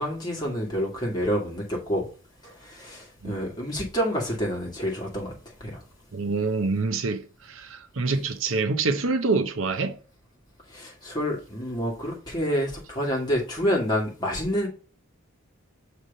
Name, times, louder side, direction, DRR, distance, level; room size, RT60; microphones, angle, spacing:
voice 1, 0.0-2.1 2.4-5.8 10.7-14.7, equal, 20° left, 2.1 m, -28 dB
voice 2, 6.1-10.0, right 4 dB, 70° right, 0.7 m, -26 dB
6.3 x 3.5 x 5.4 m
head